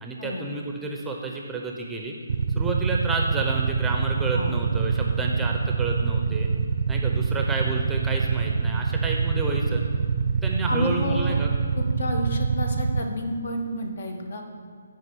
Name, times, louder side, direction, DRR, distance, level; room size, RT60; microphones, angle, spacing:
voice 1, 0.0-2.1 2.6-6.5 6.9-9.8 10.4-11.5, right 3 dB, 5° right, 0 dB, 0.7 m, -30 dB
Motorcycle / Idling, 2.3-13.0, right 5 dB, 60° right, 0.6 m, -25 dB
voice 2, 10.7-11.4 11.7-14.5, left 1 dB, 60° left, 4 dB, 1.5 m, -30 dB
11.0 x 5.2 x 6.2 m, 2.1 s
hypercardioid pair, 160°, 0 cm